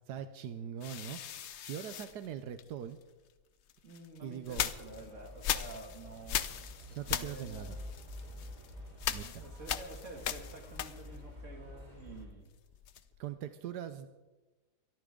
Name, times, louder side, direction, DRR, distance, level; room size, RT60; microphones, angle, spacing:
voice 1, 0.1-3.0 4.2-4.7 7.0-7.8 9.1-9.5 13.2-14.1, right 9 dB, 85° right, 10 dB, 1.4 m, -42 dB
sound 1, 0.8-3.0 3.7-11.3 11.6-13.2, left 9 dB, 60° left, 0.8 m, -39 dB
voice 2, 3.8-7.8 9.1-12.5, right 2 dB, 50° right, 2 dB, 2.8 m, -49 dB
sound 2, 4.5-12.2, left 1 dB, 25° right, 4.3 m, -49 dB
22.5 x 13.5 x 3.8 m, 1.1 s
omnidirectional pair, 1.7 m